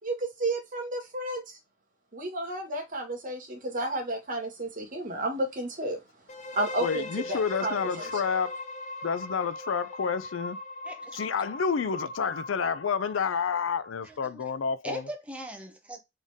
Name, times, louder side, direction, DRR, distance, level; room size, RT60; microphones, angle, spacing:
voice 1, 0.0-1.6 2.1-6.0 6.5-8.1, right 1 dB, 45° right, 1.7 m, -32 dB
sound 1, 6.3-14.1, left 2 dB, 40° left, 0.7 m, -40 dB
voice 2, 6.8-8.6 9.0-10.6 11.1-15.0, left 6 dB, 75° left, 0.5 m, -29 dB
voice 3, 10.8-11.2 14.0-14.4 14.8-16.0, right 1 dB, 5° right, 1.0 m, -40 dB
4.3 x 3.4 x 3.5 m
head